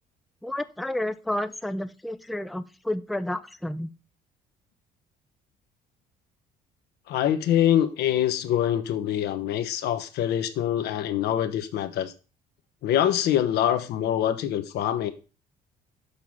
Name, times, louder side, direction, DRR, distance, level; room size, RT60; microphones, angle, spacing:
voice 1, 0.4-3.9, left 1 dB, ahead, 0.4 m, -31 dB
voice 2, 7.1-12.1 12.8-15.1, left 11 dB, 75° left, 1.0 m, -24 dB
6.9 x 4.7 x 5.5 m
cardioid pair, 110°, 17 cm